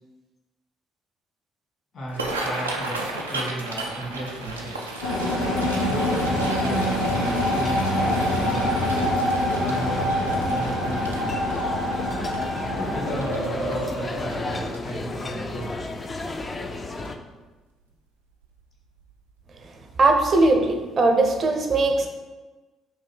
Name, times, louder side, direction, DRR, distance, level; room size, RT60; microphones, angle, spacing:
voice 1, 1.9-4.9 5.9-9.0 9.6-11.5 12.8-15.7, right 1 dB, 55° left, -3 dB, 1.4 m, -34 dB
sound 1, 2.0-15.1 15.6-15.9 16.2-16.6 17.1-17.2 18.4-18.6 19.0-19.1 19.6-19.7, right 2 dB, 90° right, 0.3 m, -35 dB
sound 2, 5.0-14.6, left 1 dB, 80° left, 0.9 m, -25 dB
sound 3, 6.6-17.2, left 3 dB, 30° left, 0.4 m, -34 dB
voice 2, 20.0-22.1, right 2 dB, 45° right, 4 dB, 0.6 m, -19 dB
2.9 x 2.6 x 4.4 m, 1.2 s
figure-of-eight pair, 45°, 0 cm